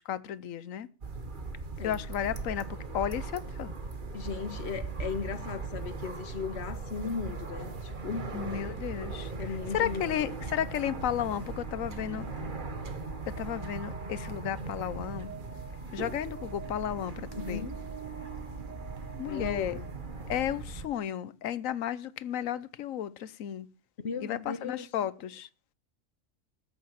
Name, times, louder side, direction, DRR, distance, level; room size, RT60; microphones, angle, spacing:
voice 1, 0.1-0.9 1.8-2.7 2.9-3.7 8.3-9.3 9.7-12.3 13.4-15.3 15.9-17.7 19.2-19.8 20.3-23.7 24.2-25.5, left 10 dB, 85° left, 1.1 m, -33 dB
sound 1, 1.0-20.9, right 3 dB, 40° right, 1.5 m, -39 dB
voice 2, 4.1-8.6 9.4-10.2 17.4-17.8 19.3-19.9 24.0-24.9, left 5 dB, 55° left, 1.3 m, -37 dB
Alarm, 13.0-20.1, right 5 dB, 85° right, 2.0 m, -50 dB
14.0 x 6.9 x 7.3 m
omnidirectional pair, 1.3 m